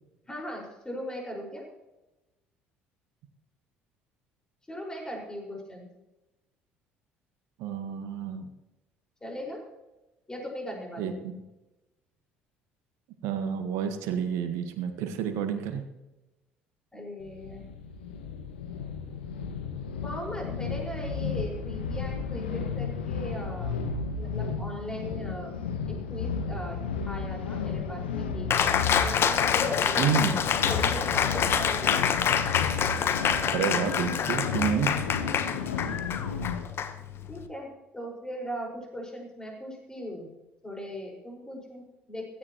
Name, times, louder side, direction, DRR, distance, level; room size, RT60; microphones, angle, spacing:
voice 1, 0.3-1.7 4.7-5.9 9.2-9.6 10.3-11.2 16.9-17.7 20.0-25.5 25.9-26.8 27.1-32.3 37.3-40.3 40.6-42.4, equal, 15° left, 0 dB, 5.3 m, -39 dB
voice 2, 7.6-8.5 11.0-11.4 13.2-15.8 30.0-30.4 33.5-34.9, right 7 dB, 60° right, 7 dB, 1.6 m, -29 dB
sound 1, 17.2-36.7, left 6 dB, 75° left, 1.2 m, -33 dB
Cheering, 28.5-37.5, left 8 dB, 45° left, 1.1 m, -27 dB
16.0 x 14.0 x 3.1 m, 1.0 s
figure-of-eight pair, 55°, 6 cm